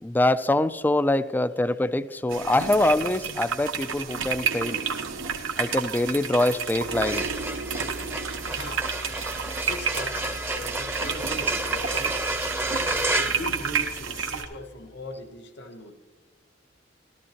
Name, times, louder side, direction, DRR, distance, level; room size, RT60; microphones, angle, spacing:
voice 1, 0.0-4.8 5.6-7.2, left 1 dB, 10° left, 14 dB, 0.3 m, -24 dB
sound 1, 2.3-14.4, right 6 dB, 85° right, 1.2 m, -31 dB
sound 2, 4.4-9.0, right 2 dB, 50° right, 0.5 m, -39 dB
sound 3, 6.8-14.3, right 1 dB, 10° right, 0.7 m, -31 dB
voice 2, 8.3-12.2 13.0-15.9, left 1 dB, 60° left, 6 dB, 1.0 m, -40 dB
13.5 x 13.5 x 2.9 m, 1.5 s
head